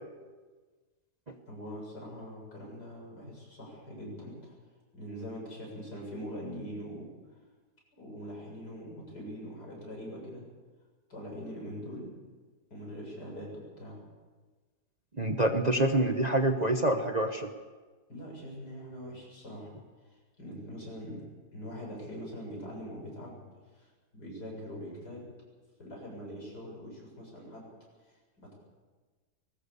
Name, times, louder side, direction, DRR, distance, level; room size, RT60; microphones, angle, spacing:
voice 1, 1.5-4.5 4.9-7.1 7.9-10.5 11.1-12.1 12.7-14.0 18.1-19.8 20.1-21.2 21.5-23.4 23.7-25.4 25.8-27.6 28.0-28.5, equal, 75° left, -1 dB, 8.1 m, -43 dB
voice 2, 15.2-17.5, right 1 dB, 30° right, 5 dB, 1.0 m, -26 dB
22.0 x 18.5 x 7.0 m, 1.4 s
omnidirectional pair, 1.8 m